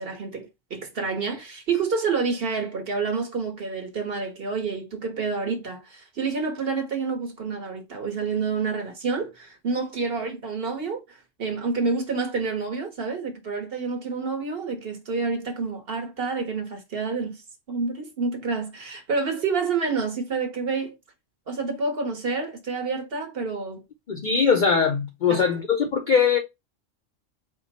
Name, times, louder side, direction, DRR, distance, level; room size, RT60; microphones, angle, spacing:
voice 1, 0.0-20.9 21.5-23.8 25.3-25.4, right 4 dB, 50° right, 1.2 m, -28 dB
voice 2, 24.1-26.4, left 6 dB, 55° left, 0.5 m, -21 dB
4.4 x 2.2 x 3.9 m
omnidirectional pair, 1.3 m